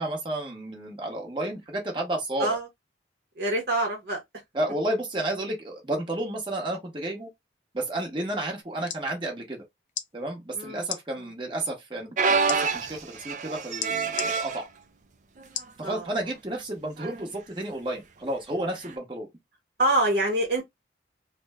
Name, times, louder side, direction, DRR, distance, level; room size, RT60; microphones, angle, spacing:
voice 1, 0.0-2.6 4.5-7.3 7.7-9.6 10.1-14.7 15.8-19.3, right 1 dB, 25° right, 1.0 m, -31 dB
voice 2, 3.4-4.2 10.6-10.8 15.8-16.1 19.8-20.6, right 1 dB, 60° right, 1.0 m, -25 dB
sound 1, 8.6-9.1 9.9-10.1 10.8-11.0 12.5-12.6 13.8-14.3 15.5-15.8 16.3-16.4, left 8 dB, 40° left, 0.5 m, -33 dB
sound 2, 12.2-14.6 15.4-15.6 16.0-16.1 17.0-17.2 18.8-18.9, right 5 dB, 40° right, 0.4 m, -27 dB
3.3 x 2.2 x 3.4 m
head